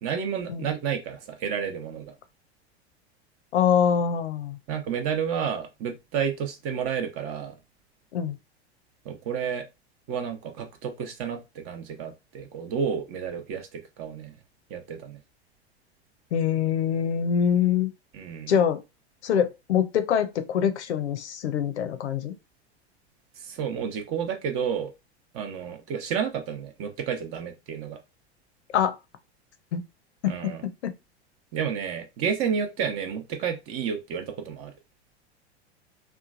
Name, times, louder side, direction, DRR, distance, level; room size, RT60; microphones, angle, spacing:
voice 1, 0.0-2.1 4.7-7.6 9.0-9.6 10.1-14.4 14.7-15.2 18.1-18.5 23.4-24.9 25.3-28.0 30.2-30.6 31.5-34.7, right 7 dB, 40° right, 0.7 m, -31 dB
voice 2, 3.5-4.6 8.1-8.4 16.3-17.9 18.5-18.8 19.2-22.3 28.7-29.0 29.7-29.8 30.2-30.4 30.8-30.9, left 8 dB, 80° left, 0.6 m, -24 dB
3.0 x 2.2 x 2.4 m
hypercardioid pair, 90°, 33 cm